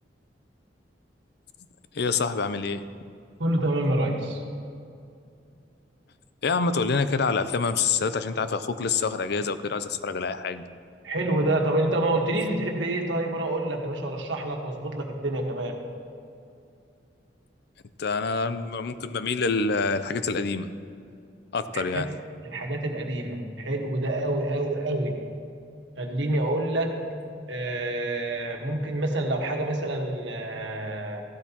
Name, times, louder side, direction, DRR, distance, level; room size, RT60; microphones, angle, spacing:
voice 1, 1.9-2.8 6.4-10.6 18.0-20.7 21.5-22.1, left 4 dB, 65° left, 12 dB, 0.5 m, -26 dB
voice 2, 3.4-4.4 11.0-15.8 21.7-22.1 22.4-25.3 26.0-27.0 27.5-31.2, right 1 dB, 90° right, 2 dB, 1.4 m, -27 dB
15.0 x 12.0 x 2.9 m, 2.5 s
head